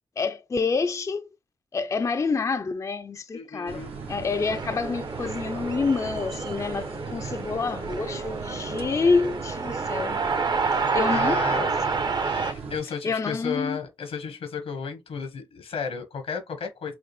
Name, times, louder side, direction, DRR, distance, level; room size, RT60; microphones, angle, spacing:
voice 1, 0.2-1.3 1.7-3.8 4.1-10.2 10.9-11.7 13.0-13.8, left 4 dB, 30° left, 0.4 m, -27 dB
voice 2, 3.3-3.9 11.1-11.6 12.2-16.9, left 6 dB, 80° left, 1.1 m, -33 dB
sound 1, 3.7-12.8, right 5 dB, 80° right, 1.0 m, -38 dB
sound 2, 4.3-12.5, right 4 dB, 45° right, 0.6 m, -29 dB
5.8 x 2.1 x 3.1 m
cardioid pair, 50°, 10 cm